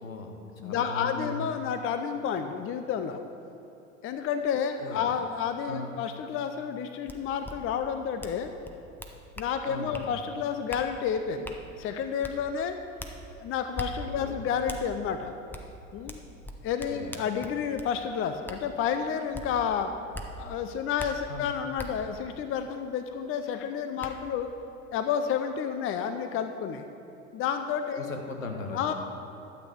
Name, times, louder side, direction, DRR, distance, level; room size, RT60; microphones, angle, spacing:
voice 1, 0.0-1.5 4.8-5.1 5.6-5.9 9.7-10.1 14.1-14.4 16.9-17.1 21.3-21.5 28.0-28.9, left 3 dB, 85° left, 4 dB, 1.2 m, -38 dB
voice 2, 0.6-3.2 4.0-8.5 9.4-12.8 13.4-15.3 15.9-16.2 16.6-19.9 20.3-24.5 24.9-26.9 27.3-28.2 28.7-28.9, left 7 dB, 35° left, 8 dB, 0.7 m, -30 dB
sound 1, 7.1-7.2 7.4-7.5 8.2-8.4 8.6-9.5 9.9-10.1 10.7-10.8 11.4-11.6 12.2-12.3 13.0-13.1 13.7-13.9 14.7-14.8 15.5-15.6 16.1-17.9 18.5-18.6 19.3-19.5 20.1-20.3 21.0-21.1 21.8-21.9 23.4-23.5 24.0-24.1, left 1 dB, 5° left, 0.9 m, -39 dB
12.0 x 8.1 x 5.2 m, 3.0 s
figure-of-eight pair, 75°, 39 cm